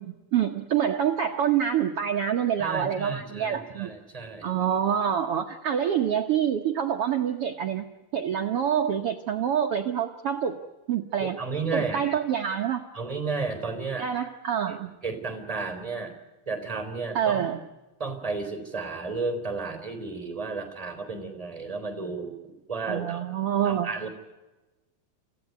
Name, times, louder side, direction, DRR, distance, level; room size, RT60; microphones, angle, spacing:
voice 1, 0.0-3.9 4.4-7.9 8.1-10.6 10.9-11.4 11.7-12.8 14.0-14.9 17.1-17.6 22.9-23.9, right 9 dB, 75° right, 4 dB, 1.3 m, -26 dB
voice 2, 2.6-4.5 11.2-12.0 12.9-14.1 15.0-16.1 16.4-17.4 18.0-22.3 22.7-23.2 23.6-24.1, right 4 dB, 10° right, 7 dB, 3.3 m, -32 dB
27.0 x 16.0 x 9.4 m, 1.1 s
omnidirectional pair, 4.1 m